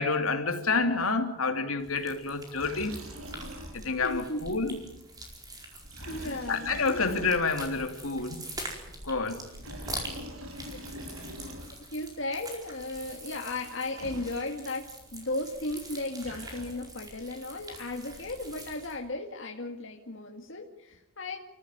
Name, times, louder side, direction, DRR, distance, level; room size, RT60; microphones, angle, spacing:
voice 1, 0.0-3.0 3.7-4.8 6.2-8.4 9.0-9.5, left 4 dB, 75° left, 2.9 m, -29 dB
sound 1, 1.8-19.0, right 1 dB, 15° right, 4.7 m, -44 dB
Liquid, 2.6-4.1 4.4-4.5 5.8-7.8 9.4-12.0 13.7-13.8 14.0-14.8 15.9-17.1, equal, 75° right, 7.1 m, -43 dB
voice 2, 4.0-4.4 6.1-7.0 10.7-10.8 11.9-21.4, left 2 dB, 55° left, 2.0 m, -36 dB
29.0 x 15.0 x 9.2 m
head